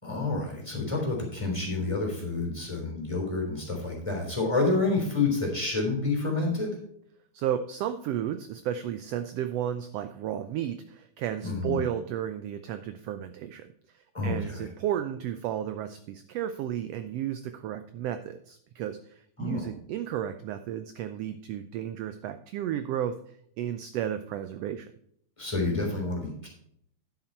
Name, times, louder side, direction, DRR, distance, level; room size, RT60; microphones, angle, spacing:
voice 1, 0.0-6.8 11.4-11.8 14.1-14.7 19.4-19.7 25.4-26.5, left 3 dB, 10° left, 0 dB, 3.6 m, -29 dB
voice 2, 7.3-24.9, right 10 dB, 80° right, 10 dB, 1.4 m, -33 dB
10.0 x 7.8 x 4.4 m, 0.67 s
omnidirectional pair, 3.4 m